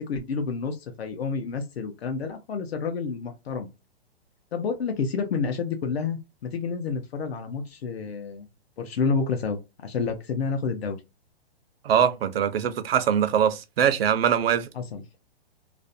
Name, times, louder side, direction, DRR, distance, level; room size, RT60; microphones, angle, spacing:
voice 1, 0.0-3.7 4.5-8.5 8.8-11.0 14.7-15.0, left 5 dB, 75° left, 0.6 m, -29 dB
voice 2, 11.8-14.7, right 8 dB, 65° right, 0.5 m, -22 dB
2.5 x 2.0 x 2.5 m
hypercardioid pair, 170°, 32 cm